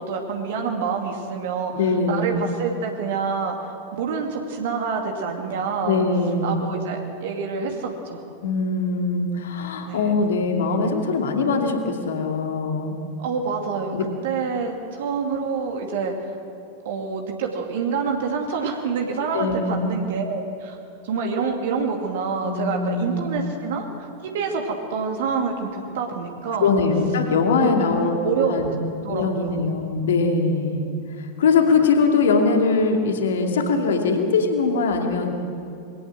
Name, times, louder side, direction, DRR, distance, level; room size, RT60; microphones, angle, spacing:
voice 1, 0.0-1.7 2.1-3.5 4.0-6.0 6.4-8.3 9.8-10.1 13.2-14.0 14.2-16.1 16.8-20.8 21.0-26.7 27.6-27.7 28.0-28.6 29.1-29.6, right 5 dB, 55° right, 2 dB, 2.3 m, -27 dB
voice 2, 1.7-2.5 5.8-6.7 8.4-13.0 13.9-14.0 19.3-19.8 22.4-23.3 26.6-28.2 28.5-28.7 29.0-30.8 31.2-35.4, left 4 dB, 60° left, 3 dB, 2.5 m, -22 dB
22.0 x 17.5 x 7.6 m, 2.5 s
figure-of-eight pair, 90°, 0 cm